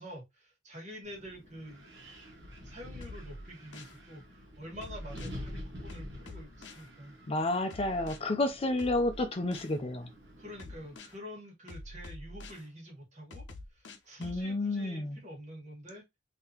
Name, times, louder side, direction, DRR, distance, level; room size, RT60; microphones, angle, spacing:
voice 1, 0.0-1.9 2.6-7.2 10.4-13.4 13.7-16.0, equal, 40° right, 1.7 m, -47 dB
Wind, 1.0-11.0, left 1 dB, 70° right, 1.4 m, -48 dB
sound 1, 3.0-4.0 4.8-5.4 5.9-6.9 7.7-8.2 8.8-9.8 10.6-11.2 11.7-12.6 13.3-14.4, left 1 dB, 80° left, 0.7 m, -46 dB
voice 2, 7.3-10.1 14.2-15.2, left 2 dB, 30° left, 0.5 m, -30 dB
3.7 x 2.9 x 2.8 m
head